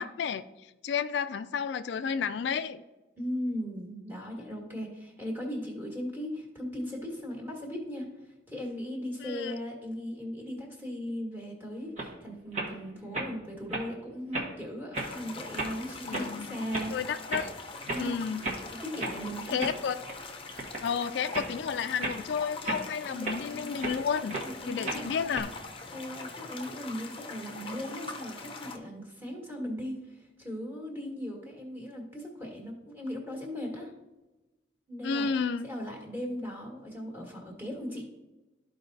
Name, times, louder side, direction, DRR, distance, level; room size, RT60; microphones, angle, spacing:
voice 1, 0.0-2.8 9.2-9.5 16.0-16.5 16.9-17.5 18.0-18.5 19.5-20.0 20.8-24.4 24.6-25.5 35.0-35.7, left 6 dB, 65° left, 11 dB, 0.3 m, -31 dB
voice 2, 3.2-16.9 17.8-18.1 18.7-19.7 23.1-23.7 24.4-25.1 25.9-33.9 34.9-35.3 35.6-38.1, equal, 10° right, -2 dB, 1.7 m, -38 dB
sound 1, 12.0-12.1 12.5-12.7 13.1-13.3 13.7-13.9 14.3-14.6 14.9-15.1 15.5-15.7 16.1-16.3 16.7-16.9 17.3-17.5 17.8-18.1 18.4-18.6 19.0-19.2 19.6-20.2 20.6-20.9 21.3-21.5 22.0-22.2 22.6-24.0 24.3-24.5 24.9-25.4, right 2 dB, 40° right, 1.3 m, -34 dB
sound 2, 14.9-28.8, left 3 dB, 30° left, 0.7 m, -43 dB
13.0 x 4.7 x 2.7 m, 1.1 s
head